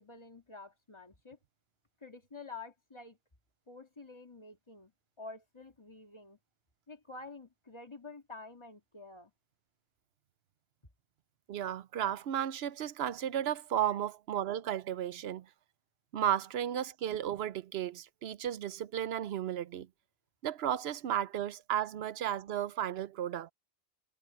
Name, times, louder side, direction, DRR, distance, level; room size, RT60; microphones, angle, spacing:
voice 1, 0.0-1.4 2.0-3.2 3.7-4.9 5.2-6.4 6.9-9.3 13.9-14.0, left 3 dB, 25° left, 1.9 m, -49 dB
voice 2, 11.5-15.5 16.1-19.9 20.4-23.5, right 10 dB, 75° right, 0.9 m, -34 dB
omnidirectional pair, 1.1 m